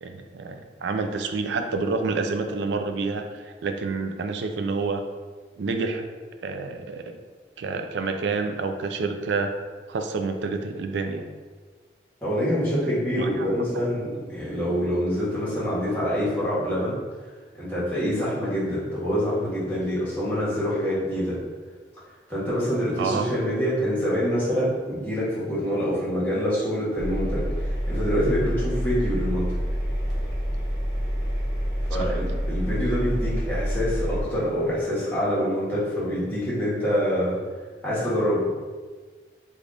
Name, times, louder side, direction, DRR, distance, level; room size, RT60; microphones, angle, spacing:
voice 1, 0.0-5.0 5.6-6.0 6.4-7.2 7.6-9.5 9.9-11.3 13.2-13.5 23.0-23.3 31.9-32.1, right 4 dB, 85° right, 6 dB, 0.4 m, -28 dB
voice 2, 12.2-17.0 17.6-21.4 22.3-29.5 31.9-37.4 37.8-38.4, equal, 10° left, -10 dB, 1.3 m, -26 dB
Engine, 27.0-34.2, equal, 25° left, 0.9 m, -27 dB
3.3 x 2.4 x 3.8 m, 1.4 s
head